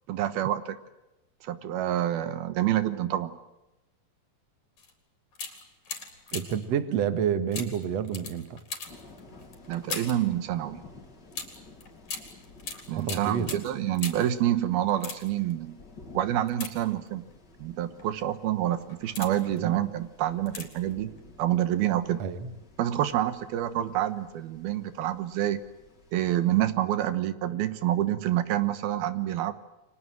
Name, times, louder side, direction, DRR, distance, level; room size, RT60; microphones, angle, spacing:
voice 1, 0.1-0.8 1.4-3.4 9.7-10.8 12.9-15.8 16.1-17.2 17.6-21.1 21.4-22.2 22.8-25.6 26.1-29.5, right 12 dB, 80° right, 12 dB, 3.1 m, -27 dB
sound 1, 4.8-4.9 5.3-6.7 7.5-10.3 11.3-14.4 14.9-15.5 16.5-17.3 18.0-18.2 18.8-19.6 20.5-20.9 21.2-21.3, left 5 dB, 50° left, 4.8 m, -40 dB
voice 2, 6.3-8.6 13.0-13.6 19.5-19.8 22.2-22.5, right 8 dB, 50° right, 11 dB, 2.4 m, -29 dB
sound 2, 8.8-26.6, left 3 dB, 30° left, 3.9 m, -53 dB
29.5 x 24.5 x 7.6 m, 0.98 s
omnidirectional pair, 4.3 m